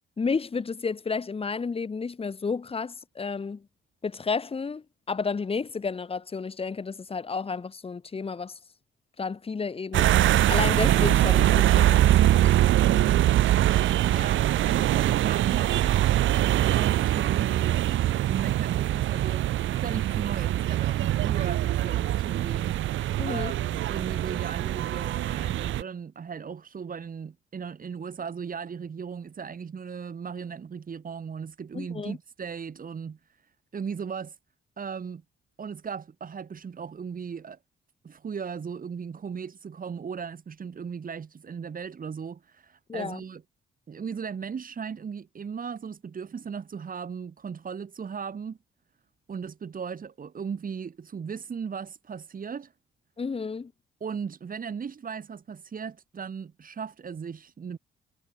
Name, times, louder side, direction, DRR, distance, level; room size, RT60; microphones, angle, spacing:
voice 1, 0.2-3.6 4.0-8.6 9.2-10.1 10.5-12.5 23.2-23.5 31.7-32.2 42.9-43.2 53.2-53.7, left 5 dB, 30° left, 1.6 m, -31 dB
sound 1, 9.9-25.8, right 13 dB, 75° right, 1.1 m, -23 dB
voice 2, 14.1-18.0 18.3-22.8 23.3-34.4 34.8-35.2 35.6-37.6 38.0-43.4 43.9-48.6 49.3-52.7 54.0-57.8, right 6 dB, 45° right, 7.8 m, -37 dB
cardioid pair, 90°, 20 cm